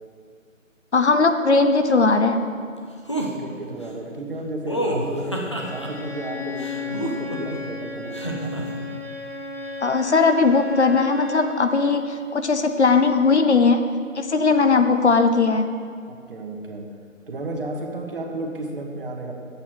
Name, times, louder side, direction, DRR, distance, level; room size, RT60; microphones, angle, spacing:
voice 1, 0.9-2.4 9.8-13.8 14.1-15.7, left 4 dB, 55° left, 7 dB, 0.7 m, -19 dB
sound 1, 3.1-3.3 4.7-5.9 6.6-7.6 8.1-8.6, right 1 dB, 20° left, 0.6 m, -27 dB
voice 2, 3.1-8.6 16.1-16.9 17.3-19.3, right 2 dB, 40° right, 1 dB, 1.4 m, -33 dB
Bowed string instrument, 5.5-11.6, left 3 dB, 80° left, 2.8 m, -33 dB
11.5 x 8.4 x 4.6 m, 2.2 s
figure-of-eight pair, 150°, 40 cm